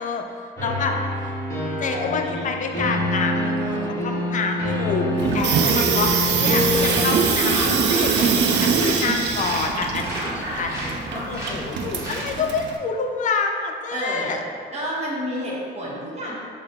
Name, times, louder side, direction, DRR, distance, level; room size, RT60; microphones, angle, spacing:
voice 1, 0.0-1.3 1.8-5.1 5.3-14.4, left 4 dB, 40° left, 3 dB, 0.4 m, -27 dB
sound 1, 0.6-7.3, left 1 dB, 15° left, 1.1 m, -26 dB
voice 2, 1.9-2.5 3.6-4.0 13.9-14.3 14.7-16.4, equal, 35° right, -6 dB, 0.9 m, -30 dB
Water tap faucet / Sink (filling or washing), 5.2-12.8, right 6 dB, 60° right, 0.4 m, -23 dB
sound 2, 6.6-12.5, equal, 15° right, 1.2 m, -32 dB
3.9 x 2.0 x 4.1 m, 2.3 s
cardioid pair, 90°, 20 cm